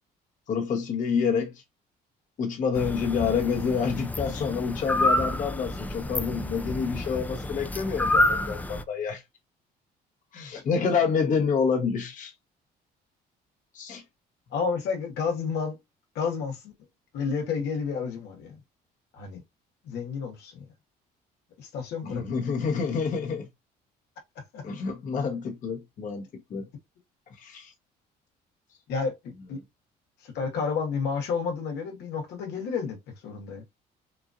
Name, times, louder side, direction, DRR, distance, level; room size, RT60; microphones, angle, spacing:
voice 1, 0.5-1.5 2.4-9.2 10.3-12.3 13.7-14.0 22.0-23.5 24.6-26.2 26.5-26.7 27.4-27.7, left 6 dB, 50° left, 1.2 m, -28 dB
sound 1, 2.7-8.8, left 1 dB, 10° left, 0.3 m, -28 dB
voice 2, 14.5-15.8 16.1-16.7 17.1-18.6 19.1-19.4 19.8-20.6 21.6-22.4 24.5-24.6 28.9-29.6 30.2-33.0 33.2-33.6, left 5 dB, 80° left, 1.5 m, -31 dB
4.3 x 2.7 x 2.4 m
cardioid pair, 110°, 17 cm